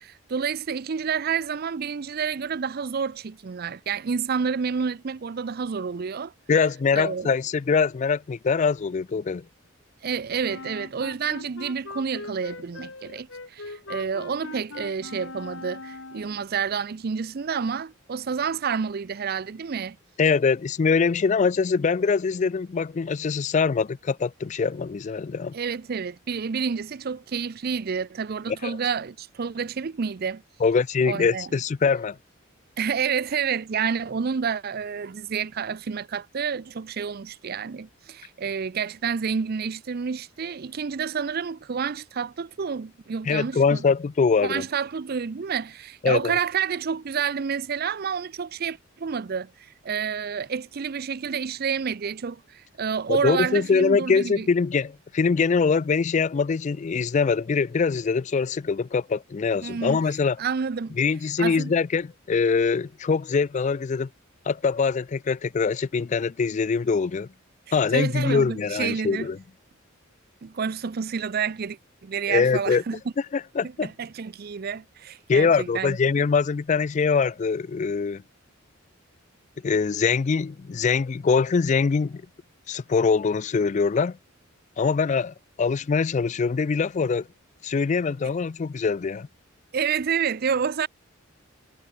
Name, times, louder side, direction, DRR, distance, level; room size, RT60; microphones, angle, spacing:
voice 1, 0.0-6.3 6.9-7.3 10.0-20.0 25.5-30.4 31.1-31.5 32.8-43.8 44.4-54.5 59.6-60.0 60.4-61.0 61.4-61.7 67.9-69.3 70.4-73.0 73.6-76.0 89.7-90.9, right 6 dB, 50° right, 0.5 m, -29 dB
voice 2, 6.5-9.4 20.2-25.5 28.5-28.8 30.6-32.2 43.3-44.7 46.0-46.3 53.1-60.4 61.0-64.1 64.5-67.3 67.7-69.4 72.3-72.8 73.3-73.9 75.3-78.2 79.6-82.2 82.7-84.2 84.8-87.3 87.6-89.3, left 5 dB, 35° left, 0.3 m, -23 dB
Wind instrument woodwind instrument, 10.4-16.5, left 3 dB, 65° left, 2.2 m, -40 dB
head